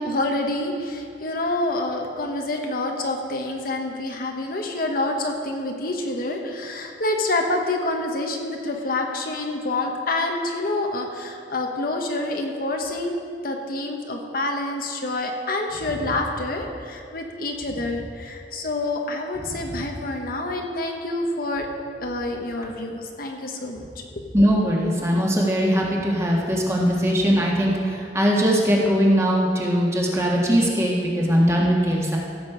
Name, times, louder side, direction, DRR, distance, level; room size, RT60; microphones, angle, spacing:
voice 1, 0.0-13.2 13.4-21.7 22.0-24.0, left 2 dB, 55° left, 2 dB, 1.1 m, -27 dB
voice 2, 24.3-32.2, equal, 15° right, -3 dB, 1.6 m, -20 dB
15.5 x 7.3 x 5.0 m, 2.3 s
head